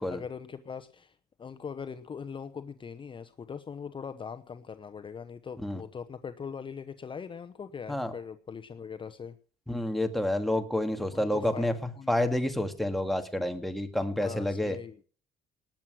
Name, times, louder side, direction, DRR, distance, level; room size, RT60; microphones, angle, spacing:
voice 1, 0.0-9.4 10.9-12.1 14.2-14.9, left 6 dB, 30° left, 10 dB, 0.9 m, -41 dB
voice 2, 9.7-14.8, left 1 dB, ahead, 6 dB, 1.9 m, -29 dB
19.5 x 7.5 x 6.2 m, 0.43 s
cardioid pair, 110°, 17 cm